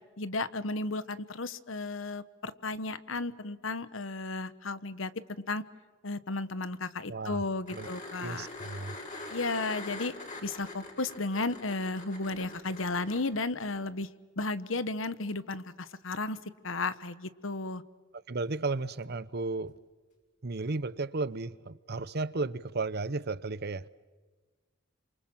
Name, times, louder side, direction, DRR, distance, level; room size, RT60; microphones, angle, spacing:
voice 1, 0.2-5.1 5.5-5.6 6.0-8.5 9.3-10.1 10.4-14.1 14.4-16.4 16.6-17.8, left 3 dB, 75° left, 1.3 m, -34 dB
voice 2, 7.1-7.4 7.7-7.9 8.2-9.0 18.3-19.7 20.4-23.9, right 3 dB, 55° right, 0.9 m, -34 dB
sound 1, 7.7-13.2 15.9-16.0, left 2 dB, 40° left, 6.9 m, -43 dB
29.0 x 26.5 x 7.5 m
head